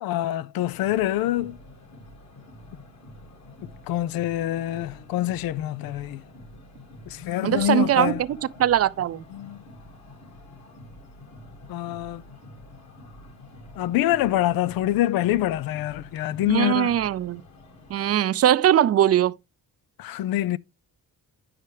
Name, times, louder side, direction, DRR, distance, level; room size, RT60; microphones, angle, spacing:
voice 1, 0.0-1.6 3.9-6.2 7.1-8.2 9.3-9.6 11.7-12.2 13.8-16.9 20.0-20.6, left 13 dB, 85° left, 0.5 m, -25 dB
sound 1, 0.6-18.1, left 1 dB, 50° left, 2.3 m, -47 dB
voice 2, 7.4-9.2 16.4-17.4 17.9-19.3, right 11 dB, 45° right, 0.4 m, -21 dB
9.4 x 5.7 x 3.3 m
cardioid pair, 100°, 35 cm